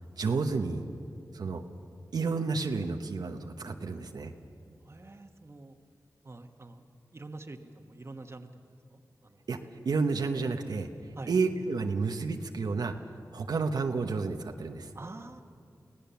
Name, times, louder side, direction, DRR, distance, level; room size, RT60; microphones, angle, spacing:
voice 1, 0.2-0.8 1.3-1.6 2.1-4.3 9.5-9.6 9.8-10.9 11.3-12.9 13.3-14.9, right 4 dB, 90° right, 4 dB, 1.0 m, -30 dB
voice 2, 4.8-5.8 6.2-8.6 8.9-9.4 11.1-11.3 14.9-15.4, right 2 dB, 40° right, 6 dB, 1.3 m, -46 dB
24.5 x 17.0 x 7.0 m, 2.5 s
wide cardioid pair, 60°, 7 cm